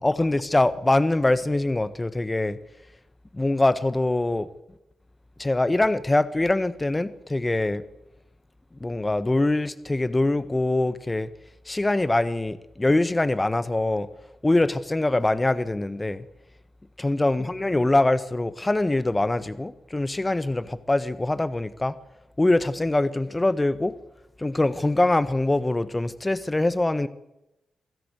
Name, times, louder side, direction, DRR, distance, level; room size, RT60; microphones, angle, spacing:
voice 1, 0.0-2.6 3.3-4.5 5.4-7.8 8.8-11.3 11.7-14.1 14.4-16.2 17.0-22.0 22.4-23.9 24.4-27.1, left 2 dB, 20° left, 1.3 m, -23 dB
24.0 x 13.5 x 8.1 m
hypercardioid pair, 40°, 0 cm